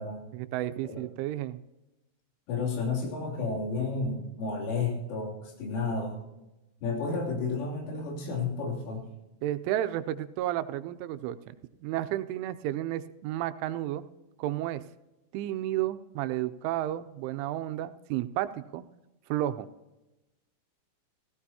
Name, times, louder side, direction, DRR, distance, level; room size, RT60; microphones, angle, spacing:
voice 1, 0.3-1.6 9.4-11.6 11.8-14.0 14.4-14.8 15.3-18.8 19.3-19.7, right 13 dB, 85° right, 11 dB, 3.1 m, -32 dB
voice 2, 2.5-6.2 6.8-9.1, left 4 dB, 90° left, -2 dB, 5.5 m, -31 dB
17.0 x 16.0 x 2.8 m, 1.0 s
omnidirectional pair, 5.5 m